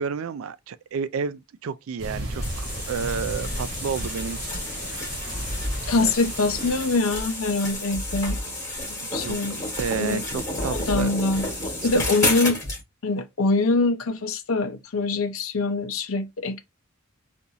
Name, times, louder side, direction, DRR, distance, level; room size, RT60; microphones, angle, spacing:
voice 1, 0.0-4.4 4.9-5.5 6.0-6.1 9.1-9.5 9.8-11.1 11.8-12.0, right 6 dB, 70° right, 0.4 m, -31 dB
sound 1, 2.0-7.0, right 1 dB, 50° right, 1.3 m, -34 dB
sound 2, 2.4-12.8, left 1 dB, 15° left, 2.0 m, -31 dB
voice 2, 5.9-8.4 8.9-9.6 10.0-10.2 10.7-11.4 11.8-12.6 13.0-16.6, left 3 dB, 75° left, 0.6 m, -24 dB
3.9 x 2.6 x 2.8 m
head